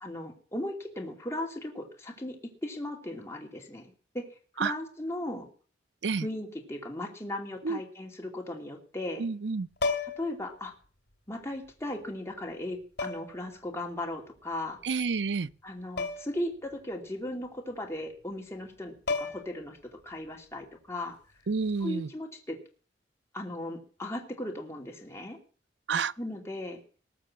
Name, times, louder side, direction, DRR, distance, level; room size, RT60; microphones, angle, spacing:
voice 1, 0.0-4.3 4.5-5.5 6.2-9.3 10.2-10.7 11.3-14.8 15.6-21.2 21.8-22.6 23.3-25.4 26.2-26.8, left 1 dB, 15° left, 2.6 m, -37 dB
voice 2, 9.2-9.7 14.8-15.5 21.5-22.1 25.9-26.1, right 5 dB, 70° right, 0.6 m, -29 dB
sound 1, 9.8-10.4 11.7-11.8 13.0-13.4 16.0-16.4 16.7-16.8 18.6-18.7 19.1-19.6 21.6-21.8, left 4 dB, 65° left, 2.6 m, -32 dB
20.0 x 6.7 x 7.5 m
head